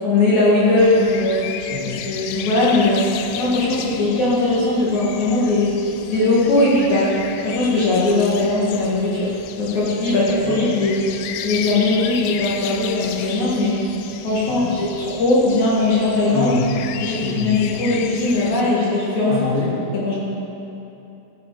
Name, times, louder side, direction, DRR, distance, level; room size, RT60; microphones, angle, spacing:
voice 1, 0.0-1.7 2.0-5.8 6.1-11.1 11.4-13.9 14.2-16.5 17.0-19.4 19.9-20.1, left 2 dB, 55° left, -6 dB, 2.9 m, -19 dB
sound 1, 0.8-18.6, left 9 dB, 85° left, 2.7 m, -34 dB
voice 2, 16.3-16.7 17.2-17.5 19.3-19.7, left 3 dB, 15° right, -8 dB, 2.3 m, -26 dB
15.0 x 9.3 x 4.8 m, 2.9 s
omnidirectional pair, 4.7 m